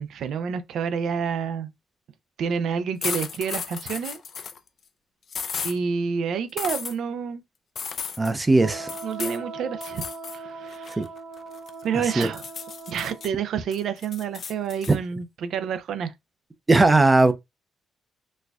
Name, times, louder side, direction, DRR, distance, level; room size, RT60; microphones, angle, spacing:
voice 1, 0.0-1.7 2.4-4.2 5.6-7.4 9.0-11.0 11.8-12.5 12.9-16.1, right 6 dB, 70° right, 0.4 m, -29 dB
sound 1, 3.0-4.6 5.3-5.8 6.6-6.9 7.8-8.3 8.9-9.4 9.8-10.4 10.7-11.8 12.2-13.3 13.7-15.0, left 6 dB, 50° left, 0.4 m, -34 dB
voice 2, 8.2-8.9 11.0-11.1 12.2-12.3 14.9-15.0 16.7-17.3, right 2 dB, 20° right, 0.5 m, -18 dB
Wind instrument woodwind instrument, 8.6-13.3, right 3 dB, 90° right, 0.9 m, -39 dB
4.2 x 2.2 x 2.3 m
cardioid pair, 90°, 0 cm